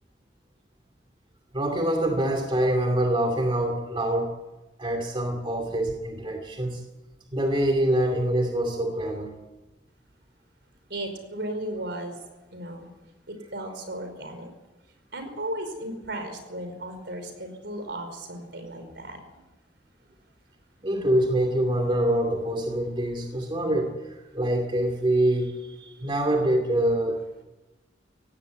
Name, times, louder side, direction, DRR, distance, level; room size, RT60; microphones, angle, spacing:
voice 1, 1.5-4.3 4.8-6.8 7.3-9.4 20.8-23.9 24.3-27.2, right 1 dB, 30° right, 3 dB, 2.5 m, -25 dB
voice 2, 10.9-12.2 12.5-12.9 13.3-14.5 15.1-19.2, right 1 dB, 65° right, 6 dB, 5.0 m, -35 dB
17.0 x 17.0 x 9.7 m, 1.1 s
head